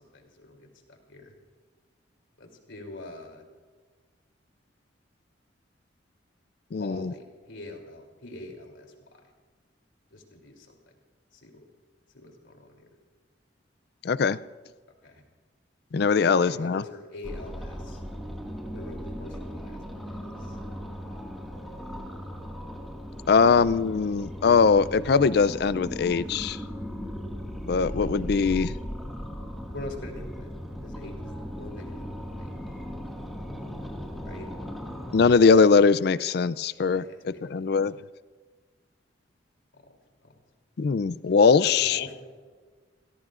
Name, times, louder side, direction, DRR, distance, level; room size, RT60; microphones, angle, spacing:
voice 1, 0.0-1.3 2.4-3.5 6.8-8.9 10.1-10.8 11.3-11.7 12.1-12.8 15.0-15.2 16.2-18.0 18.7-20.6 29.7-30.5 30.8-32.6 34.2-34.5 36.9-37.7 40.2-40.3 41.6-42.3, left 2 dB, 85° left, 2 dB, 3.0 m, -44 dB
voice 2, 6.7-7.1 14.0-14.4 15.9-16.8 23.3-26.6 27.6-28.7 35.1-37.9 40.8-42.0, left 5 dB, 55° left, 17 dB, 0.4 m, -21 dB
sound 1, 17.2-35.3, equal, ahead, 1.8 m, -37 dB
28.5 x 17.0 x 2.5 m, 1.4 s
head